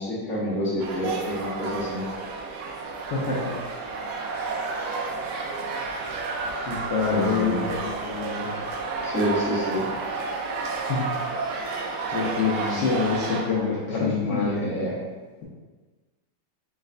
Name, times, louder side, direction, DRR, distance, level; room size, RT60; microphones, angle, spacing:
voice 1, 0.0-2.0 7.1-7.7 9.0-9.9 12.5-12.8 13.9-15.0, equal, 5° left, -11 dB, 1.0 m, -28 dB
sound 1, 0.8-13.4, right 3 dB, 75° right, 0.9 m, -31 dB
voice 2, 3.1-3.6 6.7-8.5 10.9-11.1 12.1-14.6, left 5 dB, 70° left, -6 dB, 1.2 m, -26 dB
4.1 x 3.2 x 2.5 m, 1.3 s
omnidirectional pair, 2.3 m